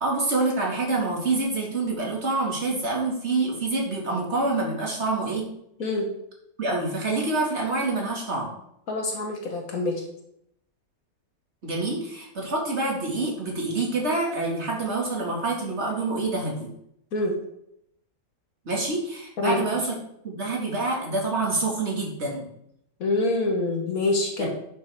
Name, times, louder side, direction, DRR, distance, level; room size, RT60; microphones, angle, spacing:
voice 1, 0.0-5.5 6.6-8.5 11.6-16.7 18.7-19.9 20.2-22.5 24.4-24.5, right 3 dB, 45° right, -2 dB, 2.6 m, -26 dB
voice 2, 5.8-6.1 8.9-10.0 17.1-17.4 19.4-19.9 23.0-24.5, left 2 dB, 70° left, 1 dB, 1.8 m, -26 dB
11.0 x 6.6 x 3.7 m, 0.76 s
omnidirectional pair, 1.6 m